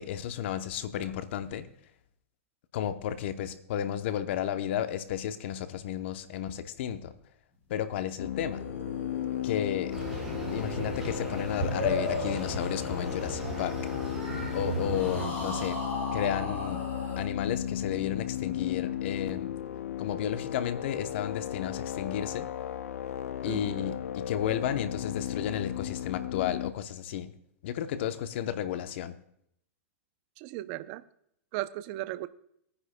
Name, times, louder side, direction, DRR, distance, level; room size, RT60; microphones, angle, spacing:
voice 1, 0.0-1.7 2.7-7.1 7.7-8.6 9.4-10.0 10.5-13.8 14.5-15.8 16.1-16.8 17.2-19.5 20.0-22.5 23.4-27.3 27.6-29.1, left 10 dB, 55° left, 10 dB, 0.8 m, -33 dB
sound 1, 8.2-26.7, left 10 dB, 85° left, 0.4 m, -35 dB
sound 2, 8.3-13.8 14.9-17.2, left 1 dB, 25° left, 4.5 m, -41 dB
sound 3, 9.9-15.2, equal, 5° right, 5.1 m, -34 dB
voice 2, 15.2-15.6 23.4-23.9 30.4-31.0 31.5-32.3, right 16 dB, 40° right, 14 dB, 0.5 m, -37 dB
20.0 x 9.7 x 2.2 m, 0.71 s
hypercardioid pair, 150°, 7 cm